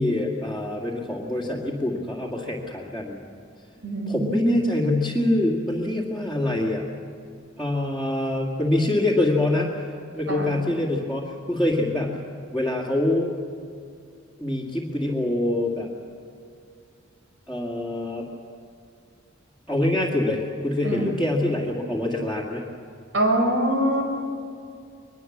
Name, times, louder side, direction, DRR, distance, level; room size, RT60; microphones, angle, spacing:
voice 1, 0.0-3.2 4.1-6.8 7.6-9.9 10.1-12.1 12.5-13.4 14.4-15.9 17.5-18.3 19.7-22.6, left 1 dB, 5° right, -7 dB, 2.2 m, -25 dB
voice 2, 3.8-4.6 10.3-10.5 20.8-21.1 23.1-24.2, right 1 dB, 75° right, 1 dB, 5.6 m, -24 dB
23.0 x 21.5 x 7.4 m, 2.3 s
head